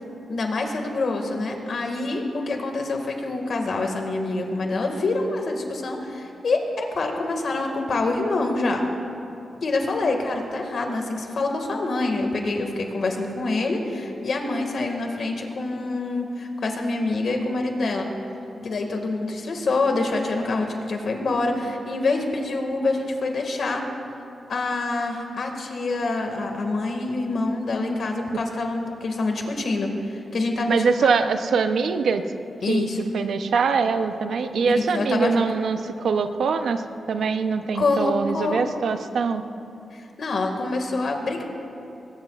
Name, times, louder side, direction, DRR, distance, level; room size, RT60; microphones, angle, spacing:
voice 1, 0.3-8.8 9.6-18.1 18.6-23.8 24.5-31.1 32.6-33.0 34.8-35.5 37.7-38.6 39.9-41.4, left 2 dB, 60° left, 3 dB, 1.9 m, -26 dB
voice 2, 30.7-32.3 32.7-32.9 33.1-39.5, right 5 dB, 75° right, 8 dB, 0.7 m, -23 dB
21.0 x 19.0 x 2.5 m, 2.8 s
wide cardioid pair, 115°, 0 cm